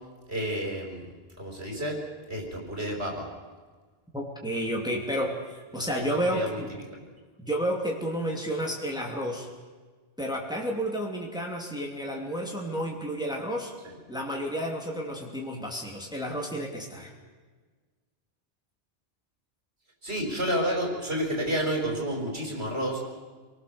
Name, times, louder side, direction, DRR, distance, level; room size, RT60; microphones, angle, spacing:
voice 1, 0.3-1.1 1.4-2.0 2.3-3.3 5.8-6.6 20.0-23.0, equal, 65° right, 1 dB, 5.3 m, -30 dB
voice 2, 4.1-6.7 7.4-9.5 10.2-13.7 14.1-17.1, equal, 5° right, 0 dB, 2.8 m, -31 dB
28.0 x 19.5 x 7.0 m, 1.4 s
omnidirectional pair, 1.2 m